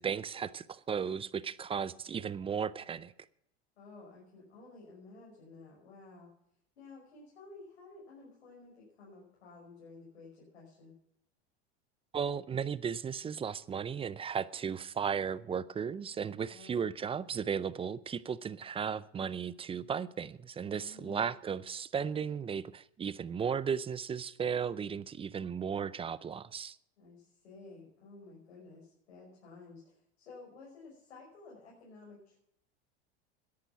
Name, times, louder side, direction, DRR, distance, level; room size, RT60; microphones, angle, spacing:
voice 1, 0.0-3.1 12.1-26.8, right 7 dB, 15° right, 0.5 m, -35 dB
voice 2, 3.8-6.3 6.8-11.0 16.5-16.8 20.8-21.3 27.0-32.4, left 3 dB, 90° left, 6.1 m, -53 dB
13.5 x 10.5 x 5.9 m
supercardioid pair, 110°, 33 cm